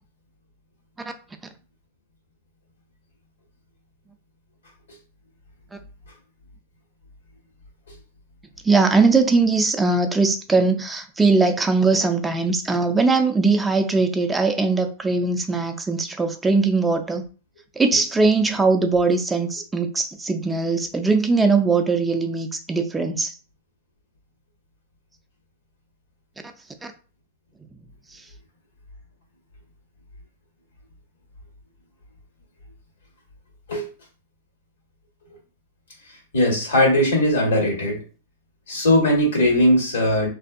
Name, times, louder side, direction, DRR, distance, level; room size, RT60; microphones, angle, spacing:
voice 1, 8.6-17.2 17.8-23.3 26.8-26.9 28.1-28.2, right 3 dB, 10° right, 6 dB, 0.3 m, -20 dB
voice 2, 36.3-38.0 38.7-40.3, left 1 dB, 80° left, 0 dB, 1.3 m, -19 dB
2.5 x 2.3 x 2.4 m, 0.35 s
hypercardioid pair, 110°, 0 cm